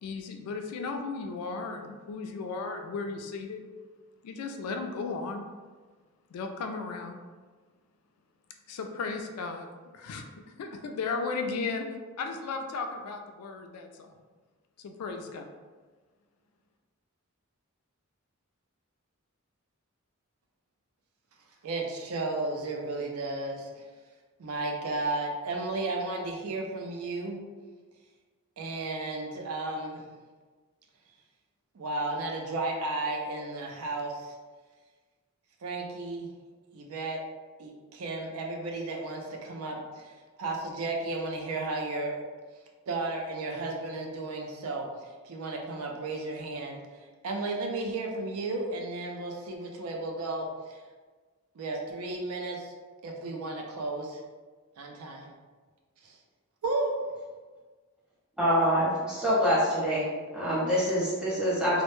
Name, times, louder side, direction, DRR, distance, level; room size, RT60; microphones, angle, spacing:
voice 1, 0.0-3.6 4.2-5.4 6.3-7.2 8.7-9.7 9.9-10.2 10.6-11.9 12.2-14.1 14.8-15.5, left 4 dB, 90° left, 6 dB, 0.3 m, -35 dB
voice 2, 21.6-23.7 24.4-27.4 28.6-30.0 31.8-34.3 35.6-36.3 36.7-37.2 37.6-39.8 40.4-42.2 42.9-44.9 45.2-46.8 47.2-50.5 51.6-52.7 53.0-54.2 54.8-55.3 56.6-56.9, right 2 dB, 75° right, 1 dB, 0.4 m, -33 dB
voice 3, 58.4-60.0 60.3-61.8, equal, 5° right, -9 dB, 0.7 m, -25 dB
2.1 x 2.0 x 2.9 m, 1.4 s
head